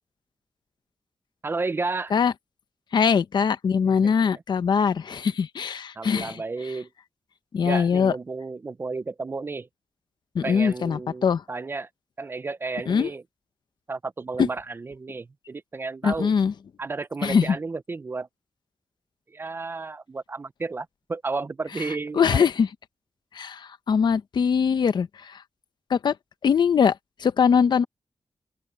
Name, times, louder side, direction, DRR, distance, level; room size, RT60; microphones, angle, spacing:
voice 1, 1.4-2.1 3.8-4.1 6.0-6.9 7.6-9.7 10.4-11.9 12.2-13.2 13.9-16.3 16.8-18.3 19.3-22.5, right 3 dB, 30° right, 0.4 m, -32 dB
voice 2, 2.9-6.4 7.5-8.1 10.3-11.4 12.9-13.1 14.4-14.5 16.0-16.5 17.2-17.6 22.1-22.7 23.3-25.4 25.9-26.1 26.4-27.8, left 6 dB, 65° left, 0.9 m, -22 dB
open air
wide cardioid pair, 155°, 8 cm